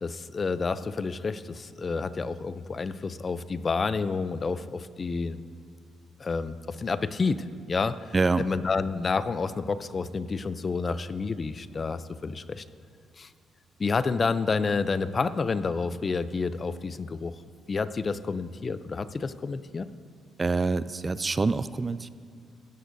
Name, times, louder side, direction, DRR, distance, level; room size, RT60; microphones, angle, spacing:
voice 1, 0.0-5.4 6.2-12.6 13.2-13.3 13.8-17.3 17.7-19.9, left 4 dB, 35° left, 14 dB, 0.4 m, -29 dB
voice 2, 8.1-8.4 20.4-22.1, right 3 dB, 30° right, 15 dB, 0.3 m, -26 dB
16.0 x 14.0 x 2.7 m, 2.3 s
cardioid pair, 90°, 0 cm